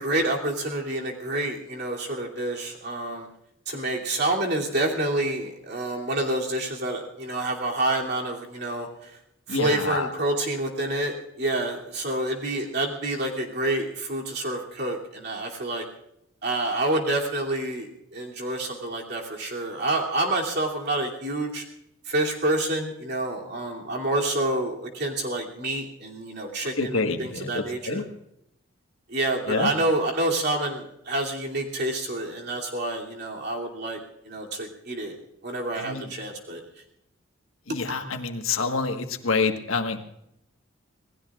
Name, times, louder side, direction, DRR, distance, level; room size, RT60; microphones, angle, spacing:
voice 1, 0.0-3.3 3.7-8.9 9.5-15.8 16.4-21.6 22.1-28.0 29.1-34.0 34.2-35.2 35.4-36.6, right 1 dB, 55° right, -1 dB, 2.9 m, -28 dB
voice 2, 9.5-10.1 26.8-28.0 29.5-29.7 35.7-36.1 37.7-40.0, left 4 dB, 90° left, 5 dB, 1.6 m, -27 dB
27.0 x 19.0 x 2.5 m, 0.79 s
head